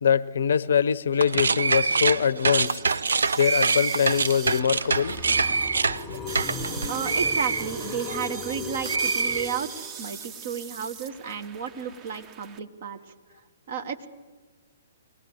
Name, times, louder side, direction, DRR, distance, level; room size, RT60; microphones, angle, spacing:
voice 1, 0.0-2.8 3.4-5.2, left 8 dB, 60° left, 0.7 m, -23 dB
sound 1, 1.1-8.5 8.8-10.0, right 4 dB, 70° right, 0.6 m, -26 dB
sound 2, 2.7-12.6, right 7 dB, 25° right, 1.0 m, -41 dB
sound 3, 4.4-10.3, left 6 dB, 10° left, 0.8 m, -39 dB
voice 2, 6.9-13.0 13.7-14.1, right 7 dB, 50° right, 1.6 m, -32 dB
23.0 x 17.5 x 8.2 m
figure-of-eight pair, 125°, 0 cm